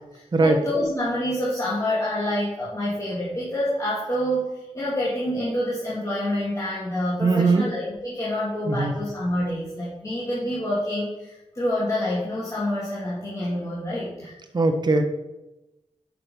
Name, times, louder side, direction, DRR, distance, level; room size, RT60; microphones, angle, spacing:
voice 1, 0.1-14.3, left 1 dB, 30° left, -8 dB, 2.2 m, -27 dB
voice 2, 7.2-7.7 8.7-8.9 14.5-15.0, right 3 dB, 40° right, 5 dB, 1.0 m, -20 dB
6.1 x 5.9 x 5.3 m, 0.99 s
wide cardioid pair, 90°, 11 cm